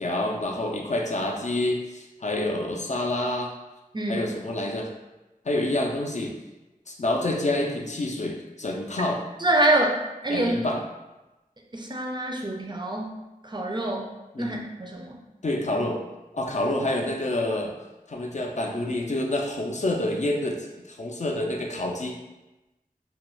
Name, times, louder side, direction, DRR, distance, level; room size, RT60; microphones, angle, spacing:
voice 1, 0.0-3.5 4.1-4.9 5.5-6.3 6.9-9.2 10.3-10.8 14.3-14.6 15.4-16.0 16.3-17.7 18.1-22.2, left 1 dB, 50° left, 0 dB, 0.4 m, -28 dB
voice 2, 3.9-4.3 9.4-10.0 10.2-10.6 11.7-13.1 13.4-14.1 14.4-15.2, right 1 dB, 30° right, 0 dB, 0.4 m, -25 dB
2.3 x 2.2 x 3.0 m, 1.0 s
wide cardioid pair, 45°, 15 cm